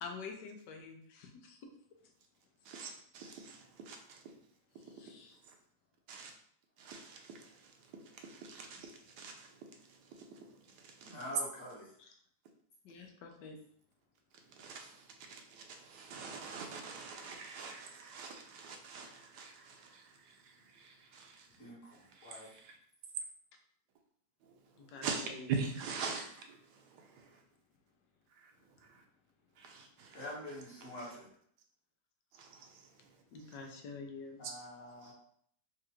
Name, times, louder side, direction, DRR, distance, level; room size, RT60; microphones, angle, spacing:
voice 1, 0.0-1.6 4.8-5.4 12.0-12.1 12.8-13.6 24.8-25.5 33.3-34.5, left 4 dB, 85° left, 1.3 m, -47 dB
voice 2, 2.6-4.3 4.9-5.0 5.5-5.6 6.1-6.3 6.8-11.2 14.3-21.5 21.9-22.8 24.4-27.4 28.3-28.5 28.8-29.0 29.6-30.2 31.0-31.1 32.3-33.1 33.4-33.5 34.4-34.5 35.0-35.1, right 5 dB, 75° right, 1.2 m, -45 dB
voice 3, 11.0-11.9 21.6-22.5 30.1-31.3 34.4-35.1, equal, 50° left, 1.7 m, -46 dB
4.4 x 2.4 x 3.0 m
omnidirectional pair, 1.8 m